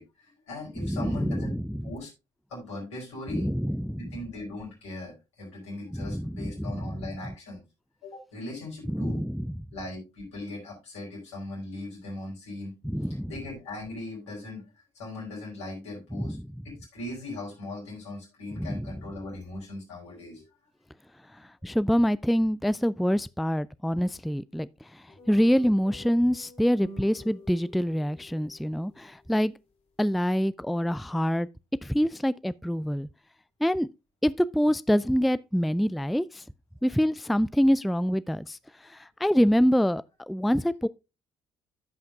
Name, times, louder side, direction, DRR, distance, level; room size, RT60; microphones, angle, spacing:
voice 1, 0.0-1.6 1.8-2.1 2.5-3.5 4.0-7.6 8.0-9.2 9.7-12.7 13.3-14.7 14.9-16.4 16.6-20.4 25.1-25.2, left 2 dB, 85° left, 4.7 m, -39 dB
voice 2, 0.8-1.9 3.3-4.0 5.9-7.1 8.9-9.6 12.8-13.3 16.2-16.5 18.5-18.9 21.6-29.5 30.0-31.5 31.8-33.1 33.6-33.9 34.2-36.4 36.8-40.9, equal, ahead, 0.3 m, -26 dB
sound 1, 25.2-28.5, left 1 dB, 50° left, 2.9 m, -48 dB
14.0 x 5.8 x 2.4 m
figure-of-eight pair, 45°, 15 cm